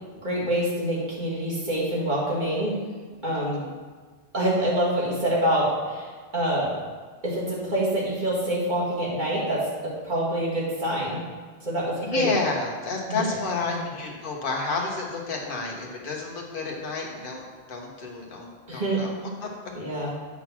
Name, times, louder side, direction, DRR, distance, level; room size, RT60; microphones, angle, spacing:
voice 1, 0.2-2.8 3.2-3.6 4.3-6.8 7.2-11.2 11.6-12.3 13.1-13.2 13.7-13.9 18.7-19.0 19.7-20.1, right 1 dB, 50° right, -7 dB, 2.0 m, -26 dB
voice 2, 12.0-19.1 19.4-19.5, left 3 dB, 60° left, -1 dB, 1.3 m, -30 dB
8.3 x 3.8 x 6.0 m, 1.5 s
omnidirectional pair, 1.1 m